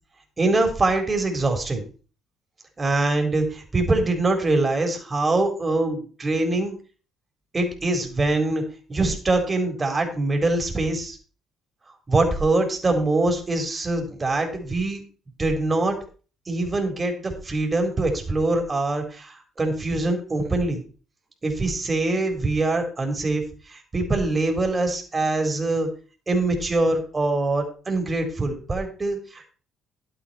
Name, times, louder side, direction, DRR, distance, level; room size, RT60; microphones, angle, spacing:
voice 1, 0.4-1.8 2.8-6.7 7.5-8.6 8.9-11.2 12.1-15.0 15.4-16.0 16.5-20.8 21.4-25.9 26.3-29.5, right 2 dB, 30° right, 4 dB, 4.2 m, -23 dB
11.5 x 9.2 x 4.4 m, 0.37 s
hypercardioid pair, 50°, 0 cm